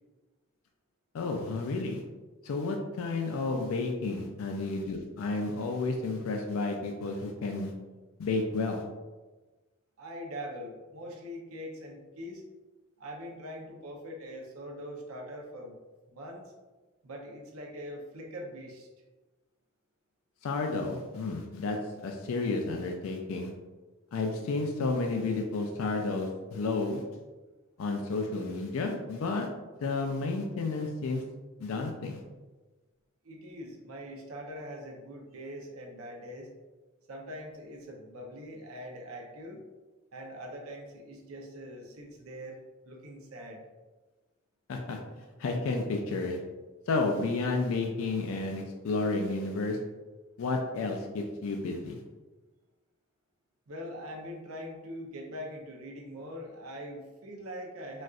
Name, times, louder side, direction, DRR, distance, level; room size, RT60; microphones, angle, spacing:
voice 1, 1.1-2.0 2.4-7.7 8.2-8.8 20.4-21.8 22.0-23.5 24.1-27.0 27.8-29.5 29.8-31.2 31.6-32.2 44.7-45.0 45.4-46.4 46.9-49.8 50.4-52.0, left 3 dB, 75° left, 3 dB, 0.4 m, -31 dB
voice 2, 10.0-12.4 13.0-15.8 16.1-16.4 17.0-18.9 33.2-36.5 37.1-39.6 40.1-42.6 42.8-43.6 53.7-58.0, equal, 85° right, 0 dB, 0.7 m, -42 dB
4.1 x 2.4 x 2.4 m, 1.2 s
head